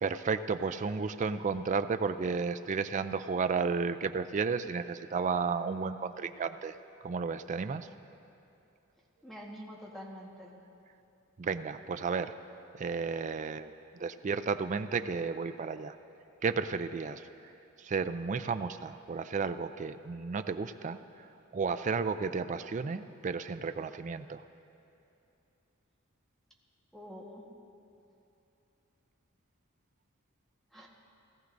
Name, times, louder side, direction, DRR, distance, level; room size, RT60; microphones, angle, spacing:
voice 1, 0.0-6.7 7.0-7.9 11.4-12.3 12.7-13.7 14.0-16.0 16.4-17.3 17.8-21.3 21.5-24.4, right 5 dB, 35° right, 10 dB, 0.4 m, -33 dB
voice 2, 9.2-10.5 26.9-27.5 30.7-30.9, equal, ahead, -3 dB, 1.4 m, -46 dB
18.0 x 14.5 x 2.6 m, 2.8 s
head